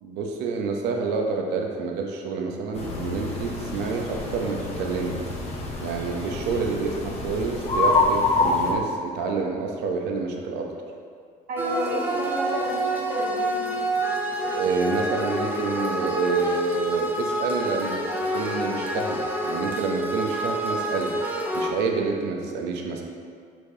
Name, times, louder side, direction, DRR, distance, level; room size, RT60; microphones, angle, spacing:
voice 1, 0.0-5.2 5.8-10.7 14.6-18.0 18.3-21.2 21.5-23.0, right 4 dB, 90° right, 2 dB, 0.7 m, -28 dB
sound 1, 2.7-8.7, left 3 dB, 40° left, 1.2 m, -27 dB
voice 2, 11.5-13.8, right 1 dB, 65° right, -4 dB, 1.5 m, -31 dB
sound 2, 11.6-21.7, right 1 dB, 10° right, 0.7 m, -28 dB
7.1 x 4.8 x 2.7 m, 2.2 s
cardioid pair, 110°, 17 cm